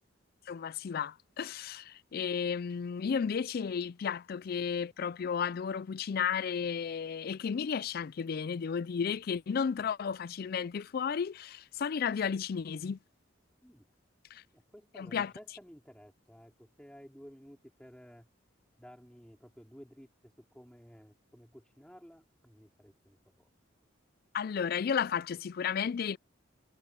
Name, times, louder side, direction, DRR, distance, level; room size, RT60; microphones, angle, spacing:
voice 1, 0.5-13.0 14.3-14.4 15.0-15.3 24.3-26.2, left 6 dB, 50° left, 0.4 m, -33 dB
voice 2, 13.6-13.9 14.5-18.3 18.8-23.5, equal, 5° left, 4.5 m, -54 dB
head